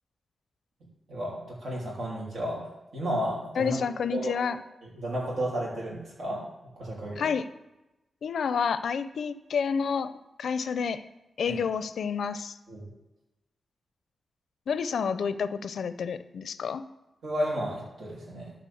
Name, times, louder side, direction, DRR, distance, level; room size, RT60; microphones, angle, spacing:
voice 1, 1.1-2.6 2.9-3.8 4.1-4.4 4.8-6.4 6.8-7.3 11.5-11.6 12.7-12.9 17.2-18.5, equal, 85° right, -5 dB, 3.0 m, -32 dB
voice 2, 3.6-4.6 7.2-7.5 8.2-10.1 10.4-11.0 11.4-12.5 14.7-16.8, left 6 dB, 80° left, 13 dB, 0.5 m, -29 dB
11.5 x 4.2 x 7.0 m, 0.97 s
wide cardioid pair, 130°, 0 cm